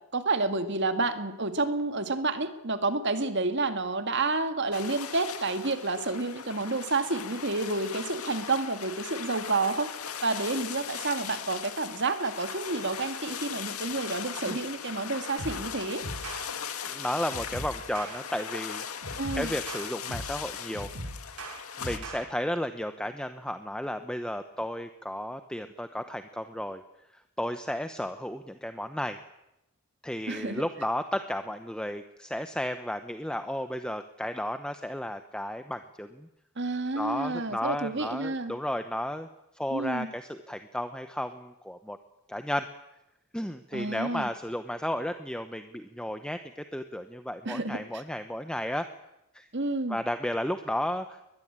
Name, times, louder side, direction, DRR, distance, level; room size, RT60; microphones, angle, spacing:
voice 1, 0.1-9.9 10.2-16.0 19.2-19.5 30.3-30.6 36.6-38.5 39.7-40.1 43.7-44.3 47.5-48.0 49.5-50.0, right 3 dB, 50° right, 9 dB, 2.1 m, -30 dB
sound 1, 4.7-22.0, left 8 dB, 75° left, 2.1 m, -39 dB
sound 2, 15.4-15.7 16.0-16.5 17.3-18.2 19.0-20.4 20.7-22.2, right 1 dB, 85° right, 6.1 m, -39 dB
voice 2, 16.9-18.8 19.3-20.9 21.8-26.8 27.4-29.2 30.0-36.3 37.0-39.3 39.5-42.0 42.3-42.7 43.3-46.4 46.7-48.9 49.3-49.5 49.9-51.2, left 1 dB, 5° left, 9 dB, 0.9 m, -33 dB
22.5 x 20.5 x 8.9 m, 0.89 s
head